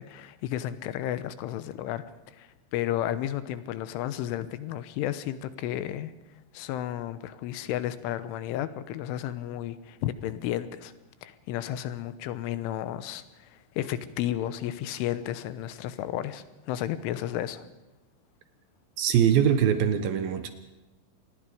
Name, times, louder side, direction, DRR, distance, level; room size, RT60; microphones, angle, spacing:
voice 1, 0.0-2.0 2.4-6.1 6.5-10.9 11.2-17.7, left 12 dB, 90° left, 13 dB, 3.5 m, -33 dB
voice 2, 19.0-20.5, right 9 dB, 70° right, 9 dB, 2.3 m, -22 dB
27.0 x 20.5 x 5.1 m, 1.0 s
omnidirectional pair, 5.5 m